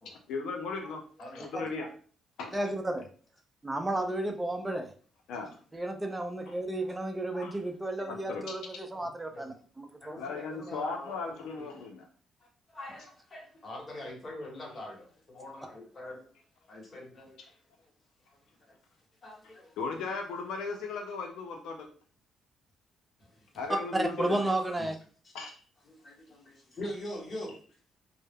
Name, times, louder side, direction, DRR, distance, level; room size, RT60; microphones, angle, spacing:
voice 1, 0.3-1.9 2.4-2.6 5.3-5.5 7.4-7.5 8.1-8.4 10.2-12.1 19.4-21.9 23.6-24.4 25.3-25.6, left 4 dB, 85° left, 2 dB, 0.4 m, -37 dB
voice 2, 1.2-1.7 6.9-7.0 7.3-7.5 7.9-8.4 9.0-9.4 10.0-11.7 12.7-16.2 16.6-17.4 18.7-18.8 19.2-19.8 23.2-23.3 24.8-24.9 25.9-27.6, left 1 dB, 35° left, -2 dB, 1.0 m, -44 dB
voice 3, 2.5-3.1 3.6-4.9 5.7-10.2 23.7-25.0, right 1 dB, 15° right, 4 dB, 0.5 m, -32 dB
2.1 x 2.0 x 3.4 m, 0.42 s
cardioid pair, 90°, 0 cm